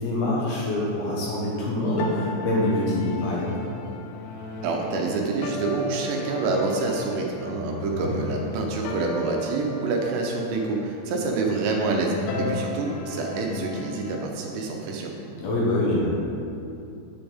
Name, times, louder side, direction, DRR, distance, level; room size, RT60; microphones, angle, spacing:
voice 1, 0.0-3.6 7.9-8.1 12.3-12.5 15.4-16.1, left 1 dB, 70° left, -5 dB, 2.9 m, -25 dB
sound 1, 2.0-14.2, left 2 dB, 90° left, 3.0 m, -36 dB
voice 2, 4.6-15.1, right 3 dB, 80° right, 0 dB, 2.8 m, -27 dB
9.0 x 7.7 x 3.5 m, 2.7 s
omnidirectional pair, 5.2 m